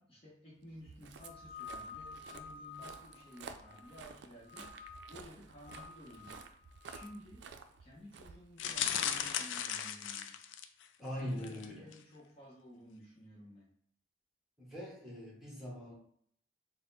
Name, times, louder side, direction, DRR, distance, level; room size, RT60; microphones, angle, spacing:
voice 1, 0.0-4.8 5.1-6.4 6.8-7.4 7.8-10.5 11.1-13.7, equal, 30° left, -5 dB, 0.9 m, -54 dB
Walk footsteps, 0.7-9.0, right 5 dB, 65° right, 0.4 m, -53 dB
sound 1, 1.2-4.1 4.5-5.2 5.6-7.1, left 5 dB, 25° right, 1.5 m, -51 dB
sound 2, 8.6-10.9 11.4-11.7 11.9-12.0, left 9 dB, 85° left, 0.4 m, -36 dB
voice 2, 11.0-11.9 14.6-15.9, equal, ahead, -5 dB, 1.3 m, -42 dB
4.0 x 2.1 x 4.0 m, 0.64 s
head